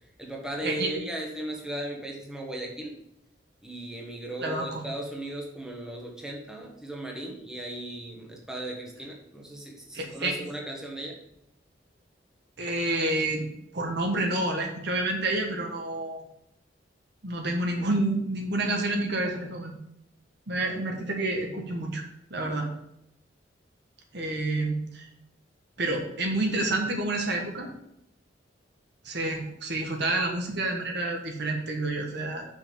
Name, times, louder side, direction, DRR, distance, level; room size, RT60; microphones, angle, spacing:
voice 1, 0.2-3.0 3.6-11.2, right 1 dB, 5° right, -1 dB, 1.3 m, -37 dB
voice 2, 4.4-4.8 9.9-10.4 12.6-13.4 13.7-16.2 17.2-19.7 20.5-22.0 22.3-22.7 24.1-25.1 25.8-27.7 29.0-32.5, right 2 dB, 65° right, 2 dB, 1.5 m, -29 dB
6.2 x 5.6 x 5.2 m, 0.77 s
head